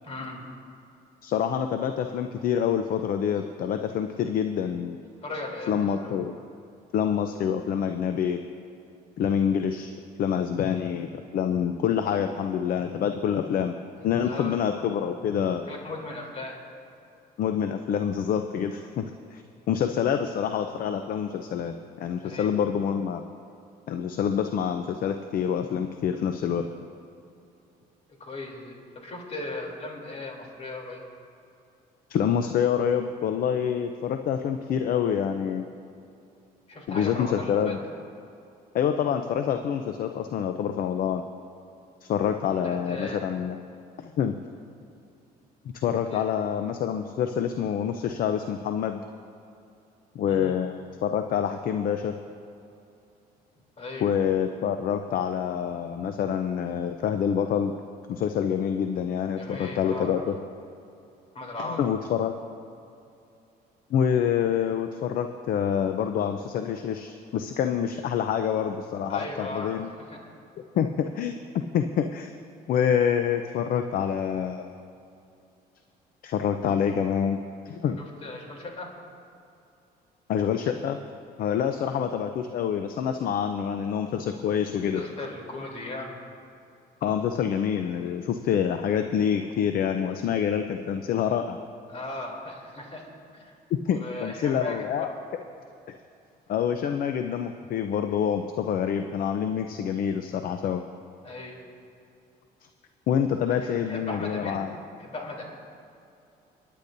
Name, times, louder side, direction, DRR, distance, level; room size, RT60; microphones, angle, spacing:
voice 1, 0.0-0.5 5.2-6.1 10.7-10.8 14.2-14.6 15.7-16.6 22.2-22.5 28.2-28.8 29.0-31.0 36.7-37.8 42.6-43.2 46.1-46.2 50.3-50.5 53.8-54.1 59.4-60.2 61.3-61.8 69.1-69.8 70.1-70.2 78.0-78.9 84.9-86.2 91.9-93.5 93.9-95.1 101.2-101.6 103.6-104.6 105.0-105.4, left 2 dB, 40° left, -1 dB, 3.2 m, -37 dB
voice 2, 1.2-5.0 5.7-6.3 6.9-8.4 9.2-9.9 10.2-13.7 14.0-15.6 17.4-19.4 19.7-23.2 23.9-26.7 32.1-35.7 36.9-37.8 38.7-41.2 42.0-43.6 44.0-44.3 45.7-49.0 50.1-52.1 54.0-57.7 58.1-60.3 61.7-62.3 63.9-69.9 70.7-70.9 71.2-71.4 71.7-72.3 72.7-74.7 76.2-77.4 77.6-78.0 80.3-81.0 81.4-85.0 87.0-91.6 93.9-95.1 96.5-100.8 103.1-104.7, left 8 dB, 60° left, 7 dB, 0.6 m, -26 dB
29.0 x 10.0 x 2.7 m, 2.6 s
cardioid pair, 110°, 17 cm